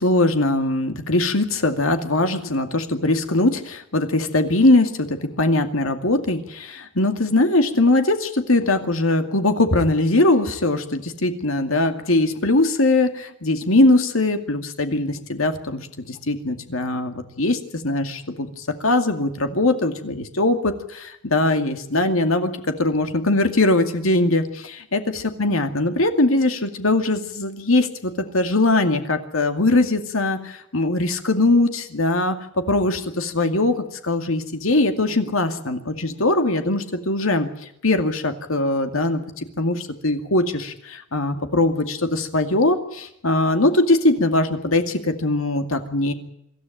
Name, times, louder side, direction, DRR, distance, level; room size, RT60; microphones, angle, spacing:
voice 1, 0.0-22.5 22.8-32.4 32.7-37.5 37.8-39.2 39.6-46.1, left 2 dB, 80° left, 7 dB, 2.3 m, -21 dB
25.5 x 13.5 x 9.2 m, 0.79 s
head